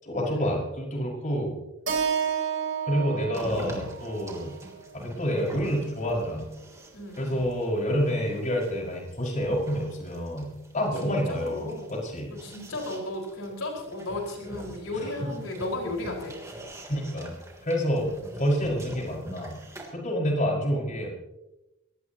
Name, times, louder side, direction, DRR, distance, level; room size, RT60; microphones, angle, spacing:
voice 1, 0.0-1.5 2.8-4.6 4.9-6.5 7.2-12.3 14.9-15.0 16.9-17.3 17.6-18.1 18.4-19.6 19.9-21.2, equal, 35° left, -2 dB, 5.6 m, -28 dB
Keyboard (musical), 1.9-6.1, right 7 dB, 55° right, 3.2 m, -32 dB
sound 1, 3.3-19.9, equal, 15° right, 3.2 m, -44 dB
voice 2, 6.9-7.4 11.0-11.9 12.3-16.4, left 2 dB, 75° left, -1 dB, 5.0 m, -34 dB
24.5 x 19.0 x 2.9 m, 0.96 s
head